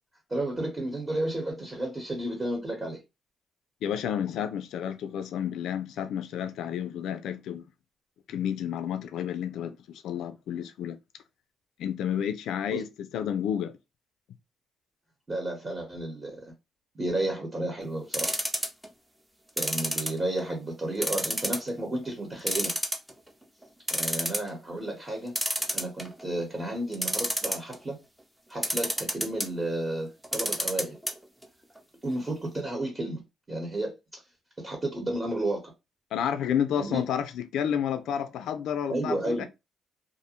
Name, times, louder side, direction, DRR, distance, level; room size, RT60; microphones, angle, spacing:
voice 1, 0.3-3.0 12.7-12.8 15.3-16.5 16.9-18.3 19.6-22.7 23.9-25.3 25.7-28.0 28.5-31.0 32.0-34.2 34.6-35.7 36.7-37.0 38.9-39.5, right 1 dB, 25° right, 1.0 m, -32 dB
voice 2, 3.8-7.7 8.3-11.0 11.8-13.7 36.1-39.4, left 9 dB, 80° left, 0.3 m, -30 dB
sound 1, 18.1-18.9 19.6-20.5 21.0-21.7 22.0-22.1 22.5-23.3 23.6-23.7 23.9-24.5 25.3-26.2 26.9-27.8 28.6-29.5 30.2-31.1 31.4-31.5 31.8-31.9, equal, 10° right, 0.6 m, -28 dB
2.5 x 2.1 x 2.9 m
cardioid pair, 85°, 0 cm